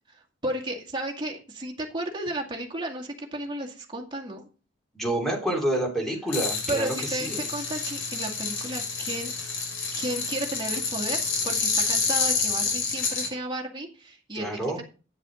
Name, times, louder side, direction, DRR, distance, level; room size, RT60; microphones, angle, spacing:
voice 1, 0.1-4.4 6.7-9.3 9.9-11.2 11.4-14.8, right 1 dB, 25° right, 0 dB, 2.1 m, -33 dB
voice 2, 4.9-7.5 14.3-14.8, right 1 dB, ahead, 0 dB, 3.2 m, -28 dB
sound 1, 6.3-13.3, left 5 dB, 80° left, 4.9 m, -28 dB
9.7 x 7.4 x 5.0 m, 0.35 s
head